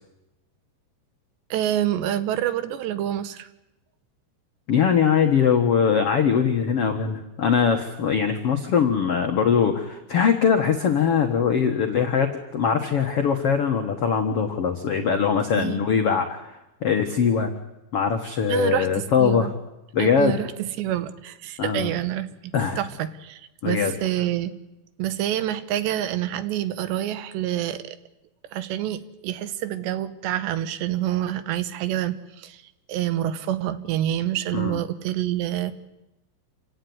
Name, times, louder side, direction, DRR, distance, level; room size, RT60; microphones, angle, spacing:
voice 1, 1.5-3.5 15.5-15.9 18.5-19.5 20.0-22.3 22.8-23.4 23.7-24.5 25.0-28.0 28.5-32.6 32.9-35.7, right 12 dB, 80° right, 12 dB, 3.3 m, -27 dB
voice 2, 4.7-16.5 16.8-17.5 17.9-19.5 19.9-20.4 21.6-21.9 22.5-22.8 23.6-23.9 34.5-34.8, left 7 dB, 85° left, 4 dB, 1.3 m, -22 dB
28.0 x 16.5 x 9.6 m, 0.96 s
omnidirectional pair, 5.1 m